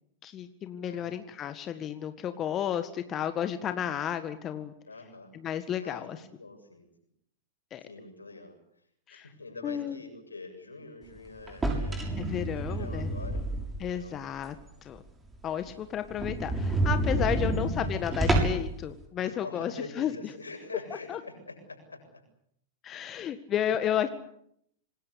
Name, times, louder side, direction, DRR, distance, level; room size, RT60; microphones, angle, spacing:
voice 1, 0.2-4.7 5.3-6.3 7.7-7.8 9.1-9.3 9.6-10.0 12.2-13.1 13.8-14.6 14.8-15.0 15.4-20.1 21.1-21.2 22.8-24.1, left 10 dB, 30° left, 9 dB, 1.7 m, -32 dB
voice 2, 0.8-1.2 4.9-5.3 5.8-6.9 7.8-8.6 9.1-12.2 12.6-13.4 14.0-14.2 15.6-15.7 17.1-17.5 19.2-22.2 23.8-23.9, left 3 dB, 90° left, 4 dB, 7.5 m, -44 dB
sound 1, 11.5-14.0 14.4-14.5 15.0-15.1 15.3-15.4 15.7-15.8 16.1-18.7, right 2 dB, 15° right, 6.8 m, -29 dB
26.5 x 20.0 x 8.4 m, 0.71 s
figure-of-eight pair, 100°, 0 cm